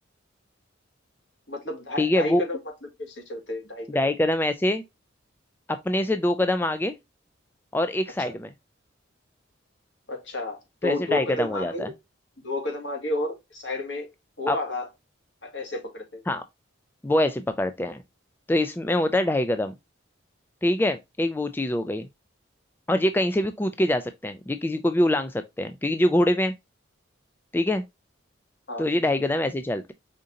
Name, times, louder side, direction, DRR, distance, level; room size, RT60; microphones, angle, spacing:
voice 1, 1.5-3.9 8.2-8.3 10.1-11.9 12.4-14.9 15.4-16.2 28.7-28.9, left 2 dB, 65° left, 2.0 m, -31 dB
voice 2, 2.0-2.4 3.9-4.8 5.7-6.9 7.7-8.5 10.8-11.9 14.5-14.6 16.3-16.4 17.0-18.0 18.5-19.7 20.6-22.1 22.9-26.5 27.5-27.8 28.8-29.9, left 1 dB, 10° left, 0.3 m, -24 dB
5.1 x 3.7 x 2.7 m
head